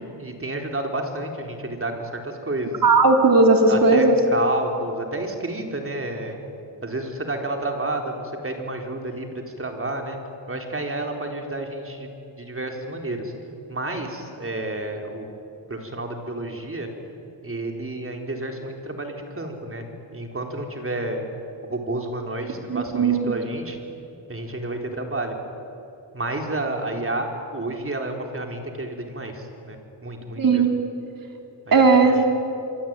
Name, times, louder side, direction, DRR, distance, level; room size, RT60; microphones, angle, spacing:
voice 1, 0.0-2.8 3.7-6.4 6.8-10.2 10.5-12.1 12.4-13.3 13.7-15.3 15.7-16.9 17.4-19.8 20.1-21.3 21.7-23.8 24.3-25.4 26.1-30.6 31.7-31.9, right 2 dB, 30° right, 3 dB, 4.2 m, -30 dB
voice 2, 2.8-4.2 22.7-23.3 30.4-30.7 31.7-32.2, right 3 dB, 45° right, 3 dB, 4.0 m, -16 dB
26.0 x 23.0 x 9.1 m, 2.8 s
cardioid pair, 90°, 45 cm